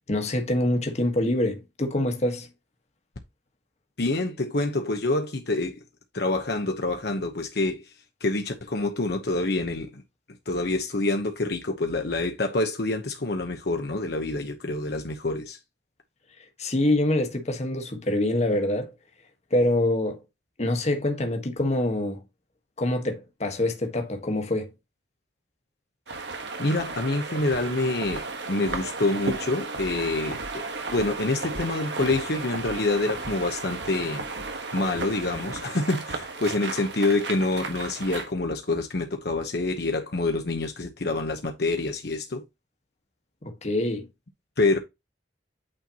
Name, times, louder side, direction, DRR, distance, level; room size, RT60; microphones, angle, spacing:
voice 1, 0.1-2.5 16.6-18.9 19.5-20.2 20.6-22.2 22.8-24.7 43.4-44.1, left 1 dB, 40° left, 1.4 m, -25 dB
voice 2, 4.0-5.8 6.1-10.0 10.5-15.6 26.1-26.3 26.6-30.7 30.9-34.3 34.7-42.5 44.6-44.8, left 2 dB, 65° left, 0.9 m, -27 dB
sound 1, 26.1-38.3, right 3 dB, 75° right, 1.5 m, -34 dB
8.8 x 4.5 x 2.9 m
head